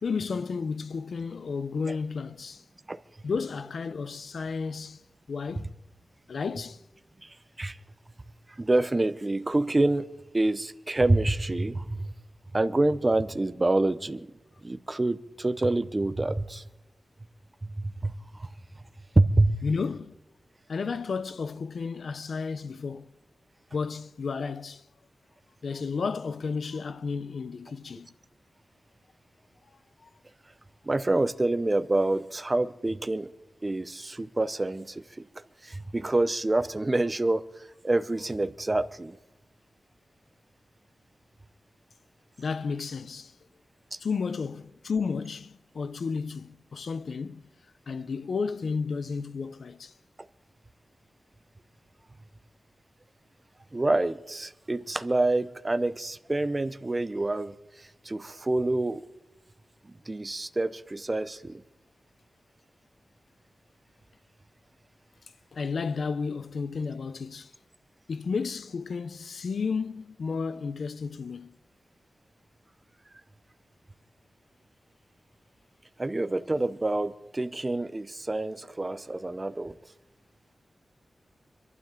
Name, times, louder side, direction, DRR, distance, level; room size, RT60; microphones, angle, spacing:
voice 1, 0.0-2.6 3.2-5.0 5.3-5.7 6.3-6.8 19.6-20.2 20.7-23.1 23.7-24.8 25.6-28.1 30.0-30.1 42.4-43.3 44.0-47.4 47.9-49.9 65.5-67.5 68.1-71.5, left 5 dB, 70° left, 0.7 m, -32 dB
voice 2, 7.2-7.8 8.5-10.1 10.3-12.1 12.5-14.3 14.6-16.6 17.6-18.5 19.2-19.6 30.8-33.3 33.6-39.2 43.9-44.0 53.7-59.0 59.9-61.6 76.0-79.8, right 2 dB, 25° right, 0.7 m, -27 dB
26.0 x 12.0 x 3.8 m
wide cardioid pair, 135°, 0 cm